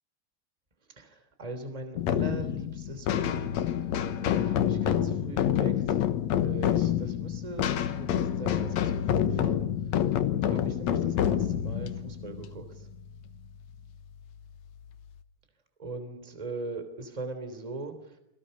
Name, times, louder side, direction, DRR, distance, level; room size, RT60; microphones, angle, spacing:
voice 1, 0.9-3.8 4.2-6.0 6.4-9.6 10.4-12.9 15.8-18.2, right 2 dB, 10° right, 8 dB, 2.6 m, -40 dB
sound 1, 2.0-13.4, left 10 dB, 70° left, 1.7 m, -28 dB
29.5 x 23.5 x 5.5 m, 0.85 s
omnidirectional pair, 4.6 m